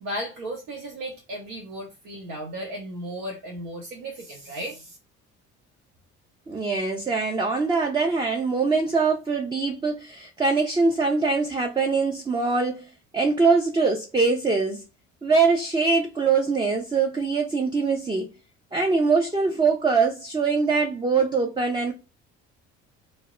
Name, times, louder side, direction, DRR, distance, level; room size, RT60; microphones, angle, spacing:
voice 1, 0.0-5.0, right 1 dB, 75° right, 0.7 m, -35 dB
voice 2, 6.5-14.8 15.2-18.3 18.7-21.9, right 4 dB, 15° right, 0.4 m, -23 dB
2.1 x 2.0 x 3.5 m
hypercardioid pair, 60°, 34 cm